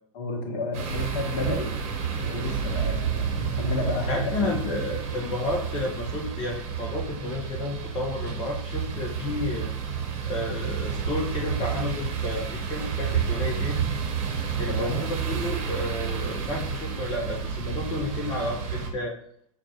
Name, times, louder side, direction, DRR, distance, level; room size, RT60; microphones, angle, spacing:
voice 1, 0.1-1.7 2.1-4.6 14.7-15.0, left 2 dB, 45° left, 2 dB, 1.0 m, -31 dB
sound 1, 0.7-18.9, right 7 dB, 40° right, 0.9 m, -30 dB
voice 2, 4.1-9.7 10.3-13.8 14.6-19.1, left 2 dB, 25° left, -1 dB, 0.6 m, -31 dB
5.9 x 2.1 x 2.8 m, 0.70 s
figure-of-eight pair, 90°, 18 cm